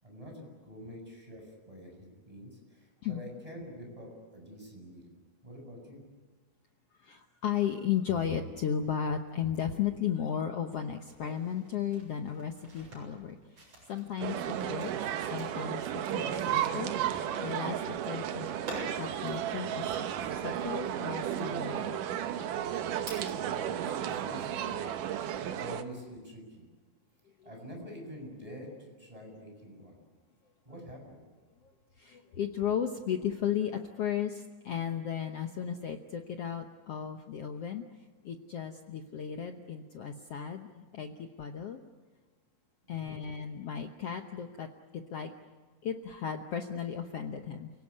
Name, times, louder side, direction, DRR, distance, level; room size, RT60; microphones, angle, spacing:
voice 1, 0.0-5.1 5.4-6.1 23.0-24.8 25.4-26.7 27.4-30.0 30.6-31.2, equal, 10° right, 1 dB, 7.1 m, -47 dB
voice 2, 7.0-14.9 15.3-18.5 19.0-22.0 27.4-27.5 31.6-31.7 32.0-37.8 38.2-41.8 42.9-44.7 44.9-45.3 45.8-47.7, left 8 dB, 70° left, 5 dB, 1.4 m, -35 dB
sound 1, 10.8-24.2 24.6-25.7, right 1 dB, 45° right, 9.0 m, -50 dB
sound 2, 14.2-25.8, right 10 dB, 70° right, 2.5 m, -33 dB
29.5 x 18.0 x 9.8 m, 1.4 s
omnidirectional pair, 4.1 m